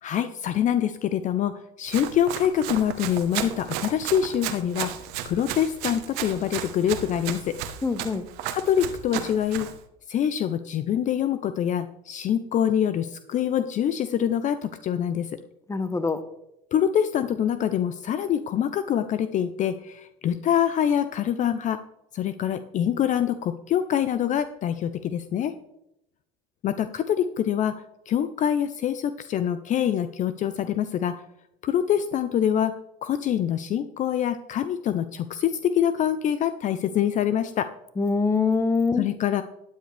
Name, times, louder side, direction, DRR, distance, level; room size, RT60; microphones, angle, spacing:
voice 1, 0.0-4.9 5.2-7.6 8.5-9.7 10.1-15.4 16.7-21.8 22.1-25.5 26.6-31.1 31.6-32.7 33.0-37.7 38.9-39.4, left 9 dB, 45° left, 11 dB, 0.6 m, -25 dB
Run, 1.9-9.8, right 10 dB, 70° right, 1.2 m, -34 dB
voice 2, 7.8-8.2 15.7-16.2 38.0-39.0, left 4 dB, 15° left, 11 dB, 1.1 m, -24 dB
12.5 x 9.5 x 3.4 m, 0.83 s
supercardioid pair, 90°, 18 cm